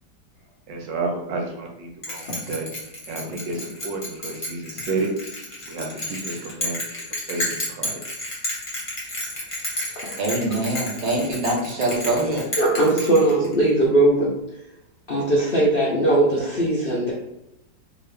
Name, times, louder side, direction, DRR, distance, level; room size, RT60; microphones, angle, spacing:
voice 1, 0.7-2.7 3.1-5.1 5.7-6.8 7.3-8.0, right 3 dB, 75° right, 1 dB, 1.3 m, -30 dB
Bell, 2.0-13.7, left 1 dB, 30° left, 0.6 m, -31 dB
voice 2, 10.2-12.4, right 2 dB, 55° right, -2 dB, 0.5 m, -24 dB
voice 3, 12.6-14.3 15.1-17.1, right 2 dB, 85° left, -5 dB, 0.4 m, -19 dB
2.9 x 2.8 x 3.3 m, 0.88 s
omnidirectional pair, 2.0 m